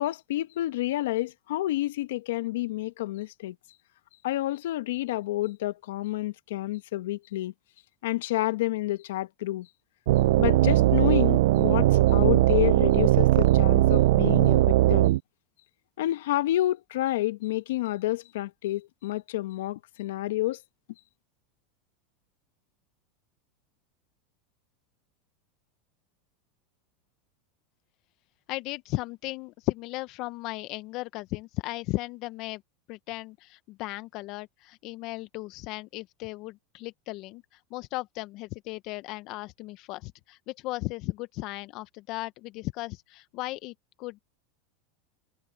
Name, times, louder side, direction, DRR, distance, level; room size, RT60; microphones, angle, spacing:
voice 1, 0.0-3.5 4.2-7.5 8.0-9.7 10.4-15.1 16.0-20.6, left 15 dB, 80° left, 1.4 m, -29 dB
sound 1, 10.1-15.2, right 16 dB, 75° right, 0.3 m, -20 dB
voice 2, 28.5-32.6 32.9-44.2, left 20 dB, 55° left, 0.7 m, -36 dB
hypercardioid pair, 110°, 0 cm